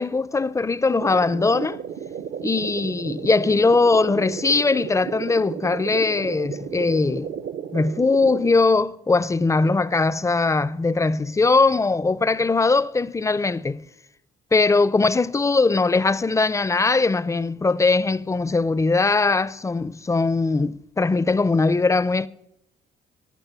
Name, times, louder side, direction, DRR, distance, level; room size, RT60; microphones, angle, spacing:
voice 1, 0.0-1.8 2.4-7.3 7.7-13.9 14.5-22.3, left 3 dB, 15° left, 0.4 m, -20 dB
sound 1, 1.0-8.5, right 8 dB, 65° right, 0.7 m, -33 dB
14.5 x 5.9 x 9.0 m
cardioid pair, 90°, 20 cm